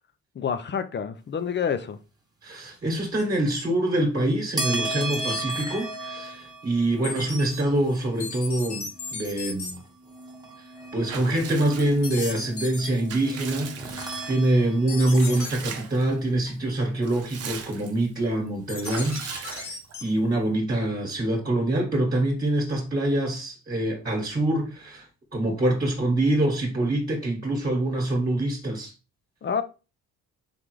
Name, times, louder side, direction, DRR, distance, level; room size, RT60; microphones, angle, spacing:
voice 1, 0.3-2.0 29.4-29.6, left 7 dB, 35° left, 0.6 m, -28 dB
voice 2, 2.4-9.8 10.9-19.7 20.0-25.1 25.3-28.9, right 1 dB, 30° right, 1.4 m, -25 dB
sound 1, 4.6-15.1, right 2 dB, 15° right, 1.1 m, -36 dB
sound 2, 5.1-5.6 7.0-7.6 8.2-9.7 12.0-12.9 14.9-15.5 18.7-20.0, left 4 dB, 70° left, 1.8 m, -35 dB
Water / Bathtub (filling or washing) / Liquid, 11.1-12.3 12.8-14.5 15.1-16.1 16.5-16.6 16.9-18.1 18.8-20.1, right 6 dB, 55° right, 0.7 m, -39 dB
3.9 x 3.4 x 3.1 m
cardioid pair, 90°, 30 cm